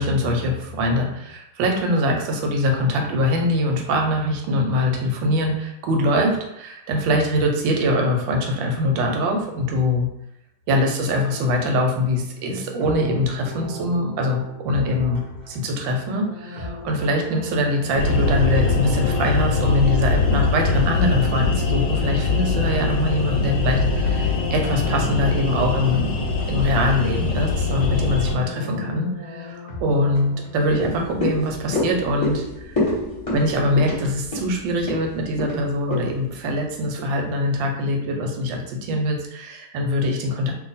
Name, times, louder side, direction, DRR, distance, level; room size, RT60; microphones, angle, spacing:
voice 1, 0.0-10.1 10.7-15.2 15.5-26.2 26.5-32.8 33.3-40.5, left 1 dB, 85° right, 2 dB, 1.4 m, -23 dB
sound 1, 11.3-30.9, equal, 50° right, 0.5 m, -37 dB
sound 2, 17.9-28.4, left 3 dB, 75° left, 1.2 m, -22 dB
sound 3, 30.6-37.1 37.5-37.6, left 2 dB, 25° left, 0.9 m, -28 dB
2.8 x 2.5 x 4.0 m, 0.79 s
omnidirectional pair, 2.0 m